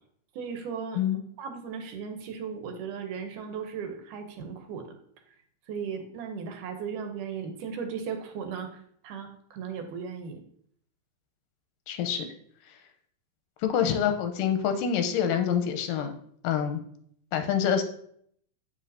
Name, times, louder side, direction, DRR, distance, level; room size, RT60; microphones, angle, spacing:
voice 1, 0.4-1.0 1.4-5.0 5.7-10.4, right 6 dB, 75° right, 6 dB, 2.2 m, -36 dB
voice 2, 11.9-12.3 13.6-16.1 16.4-16.8 17.3-17.8, left 8 dB, 85° left, 7 dB, 2.3 m, -26 dB
7.5 x 6.6 x 2.7 m, 0.65 s
omnidirectional pair, 3.9 m